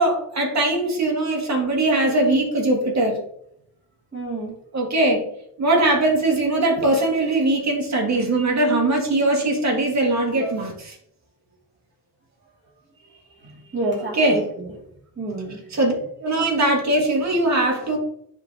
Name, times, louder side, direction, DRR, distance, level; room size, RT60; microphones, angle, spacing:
voice 1, 0.0-3.2 4.7-5.2 5.6-11.0 14.0-14.5 15.7-15.9 16.2-18.0, right 2 dB, 40° right, 1 dB, 1.7 m, -21 dB
voice 2, 4.1-4.5 13.4-14.7 15.2-15.6, right 2 dB, 25° right, -3 dB, 2.2 m, -29 dB
10.0 x 3.8 x 2.7 m, 0.70 s
wide cardioid pair, 130°, 41 cm